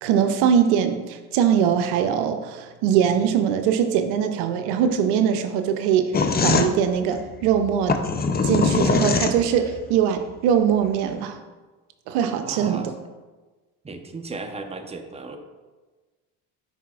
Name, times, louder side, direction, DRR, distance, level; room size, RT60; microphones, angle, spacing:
voice 1, 0.0-8.0 8.4-11.4 12.1-12.9, right 8 dB, 75° right, 7 dB, 0.6 m, -22 dB
sound 1, 6.1-9.8, left 4 dB, 25° left, 0.5 m, -22 dB
voice 2, 12.4-12.9 13.8-15.4, right 3 dB, 15° right, 5 dB, 0.8 m, -35 dB
9.8 x 4.1 x 2.4 m, 1.3 s
supercardioid pair, 70°, 39 cm